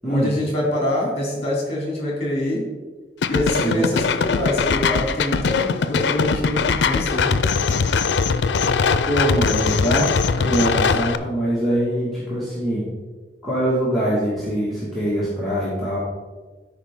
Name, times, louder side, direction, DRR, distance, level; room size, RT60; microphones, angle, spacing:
voice 1, 0.0-2.7 3.3-7.3, left 1 dB, 35° left, -2 dB, 2.8 m, -25 dB
sound 1, 3.2-11.2, left 5 dB, 85° left, 0.5 m, -21 dB
voice 2, 3.5-3.9 9.0-10.1 10.4-12.8 13.4-16.0, right 1 dB, ahead, -10 dB, 1.8 m, -23 dB
12.5 x 5.1 x 3.6 m, 1.3 s
head